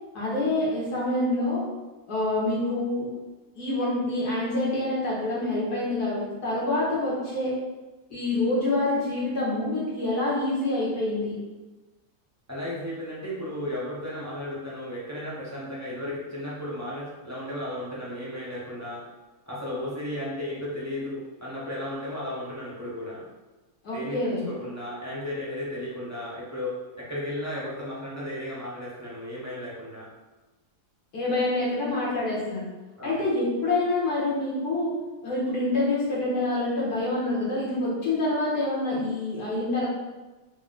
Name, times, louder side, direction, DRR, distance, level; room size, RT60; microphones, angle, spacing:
voice 1, 0.1-1.6 2.1-3.1 3.6-7.5 8.1-11.4 23.8-24.4 31.1-32.6 33.0-34.9 35.2-39.9, left 2 dB, 75° left, -7 dB, 1.9 m, -26 dB
voice 2, 12.5-19.1 19.5-23.2 23.9-30.1 33.0-33.2, left 1 dB, 20° right, -7 dB, 0.4 m, -34 dB
4.1 x 2.2 x 3.8 m, 1.2 s
omnidirectional pair, 1.7 m